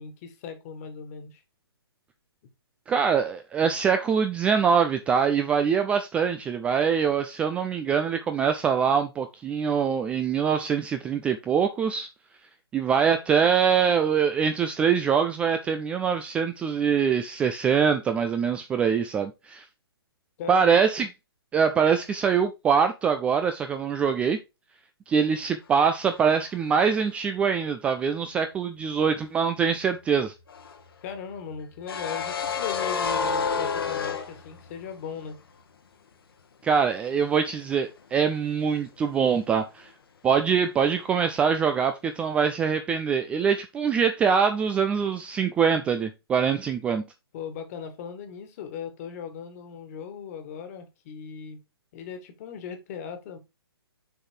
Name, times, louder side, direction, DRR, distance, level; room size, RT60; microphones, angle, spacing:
voice 1, 0.0-1.4 20.4-20.8 31.0-35.4 47.3-51.6 51.9-53.4, left 7 dB, 35° left, 1.7 m, -38 dB
voice 2, 2.9-12.1 12.7-19.6 20.5-21.1 21.5-24.4 25.1-30.3 36.6-39.9 40.2-47.0, right 6 dB, 10° right, 0.3 m, -24 dB
sound 1, 30.5-34.9 35.2-35.3 37.5-37.9 38.2-38.3, left 6 dB, 60° left, 1.3 m, -30 dB
6.7 x 4.0 x 4.4 m
figure-of-eight pair, 130°, 13 cm